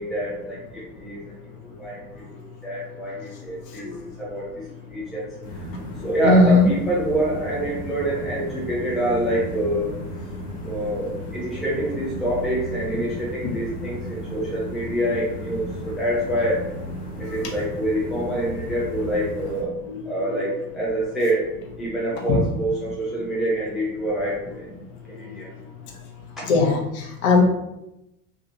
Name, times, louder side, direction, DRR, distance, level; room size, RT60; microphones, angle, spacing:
voice 1, 0.0-3.9 4.2-5.3 6.0-9.9 10.6-16.7 17.2-19.7 20.0-21.5 21.8-24.7 25.0-25.5, right 1 dB, ahead, -6 dB, 0.4 m, -26 dB
sound 1, 5.4-19.6, equal, 85° left, 0.9 m, -35 dB
voice 2, 6.2-6.7 19.9-20.4 22.1-22.4 26.4-27.4, left 3 dB, 45° left, 1 dB, 0.7 m, -19 dB
2.8 x 2.4 x 2.6 m, 0.87 s
figure-of-eight pair, 75°, 46 cm